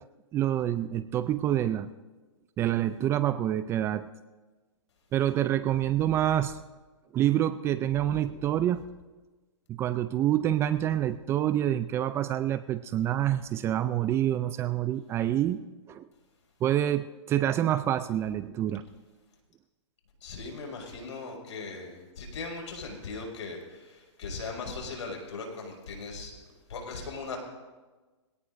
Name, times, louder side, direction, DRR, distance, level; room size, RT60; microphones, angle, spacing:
voice 1, 0.3-1.9 2.6-4.1 5.1-6.6 7.1-8.8 9.7-15.6 15.9-16.1 16.6-18.8, right 12 dB, 15° right, 13 dB, 0.3 m, -27 dB
voice 2, 20.2-26.3 26.7-27.4, left 4 dB, 70° left, 1 dB, 5.6 m, -39 dB
22.5 x 18.0 x 2.6 m, 1.3 s
hypercardioid pair, 140°, 16 cm